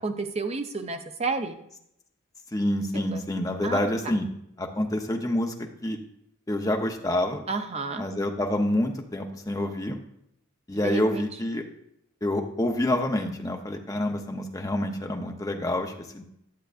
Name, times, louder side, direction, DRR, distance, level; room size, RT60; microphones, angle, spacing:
voice 1, 0.0-1.6 2.9-3.2 3.6-3.8 7.5-8.1 10.8-11.3, right 4 dB, 30° right, 7 dB, 0.5 m, -30 dB
voice 2, 2.5-4.3 4.6-6.0 6.5-7.4 8.0-10.0 10.7-11.6 12.2-16.2, left 1 dB, 15° left, 3 dB, 0.6 m, -27 dB
10.5 x 7.8 x 2.5 m, 0.76 s
head